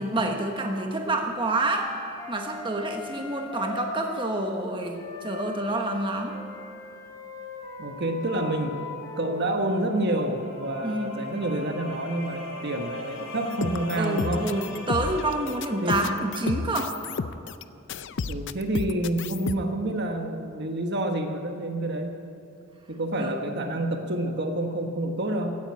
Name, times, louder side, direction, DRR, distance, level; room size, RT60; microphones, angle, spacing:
voice 1, 0.0-1.9 2.3-6.4 10.8-11.1 14.0-16.9 23.2-23.3, right 2 dB, 25° right, 2 dB, 1.2 m, -28 dB
Wind instrument woodwind instrument, 1.7-4.3 4.9-9.5, left 3 dB, 15° left, 3.7 m, -39 dB
voice 2, 7.8-8.8 9.2-14.5 15.8-16.4 18.3-22.2 22.9-25.5, right 1 dB, 50° right, 4 dB, 1.3 m, -28 dB
sound 1, 8.7-16.4, left 1 dB, 75° left, 3.7 m, -41 dB
sound 2, 13.5-17.6 17.9-19.5, left 4 dB, 60° left, 0.5 m, -32 dB
16.0 x 9.3 x 8.6 m, 2.6 s
head